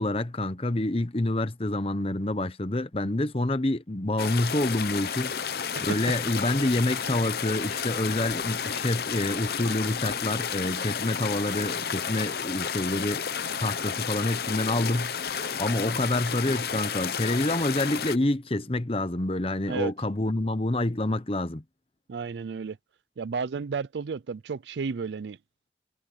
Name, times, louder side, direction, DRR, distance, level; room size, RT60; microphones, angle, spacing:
voice 1, 0.0-5.3 5.8-13.2 13.6-15.1 15.6-21.6, left 1 dB, 30° left, 0.9 m, -27 dB
sound 1, 4.2-18.2, left 7 dB, 60° left, 0.7 m, -31 dB
voice 2, 22.1-22.8 23.2-25.4, right 5 dB, 75° right, 0.4 m, -32 dB
head